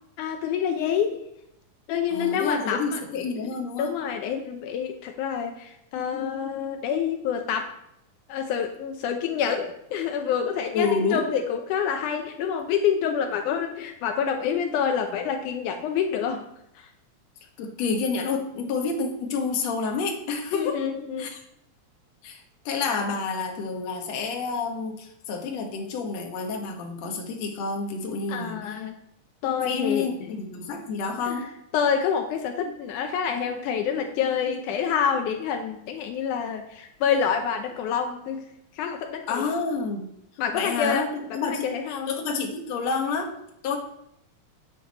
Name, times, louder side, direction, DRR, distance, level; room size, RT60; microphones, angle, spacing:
voice 1, 0.2-1.2 1.9-3.0 3.8-7.8 8.3-16.5 16.8-16.9 20.5-21.3 28.3-29.0 29.4-30.1 31.3-31.4 31.7-38.5 38.8-39.5 40.4-41.1 41.4-42.1, left 7 dB, 80° left, 4 dB, 2.3 m, -27 dB
voice 2, 2.1-4.0 10.7-11.3 17.6-20.8 21.2-21.4 22.2-28.8 29.6-31.5 39.3-40.1 40.5-43.3 43.6-43.8, left 4 dB, 60° left, 2 dB, 2.4 m, -29 dB
9.5 x 8.3 x 4.1 m, 0.78 s
omnidirectional pair, 3.6 m